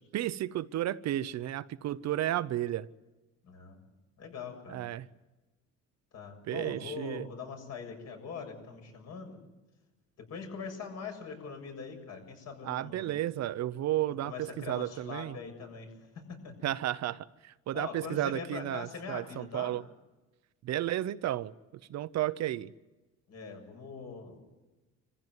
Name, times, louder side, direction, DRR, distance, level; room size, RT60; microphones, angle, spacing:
voice 1, 0.1-2.9 4.7-5.1 6.5-7.3 12.6-15.4 16.6-19.8 20.6-21.5 21.9-22.7, right 13 dB, 60° right, 14 dB, 0.8 m, -33 dB
voice 2, 3.4-3.8 4.2-4.8 6.1-9.4 10.2-13.2 14.2-16.5 17.7-19.7 23.3-24.4, left 5 dB, 60° left, 4 dB, 7.3 m, -42 dB
25.0 x 15.5 x 9.6 m, 1.1 s
cardioid pair, 115°, 30 cm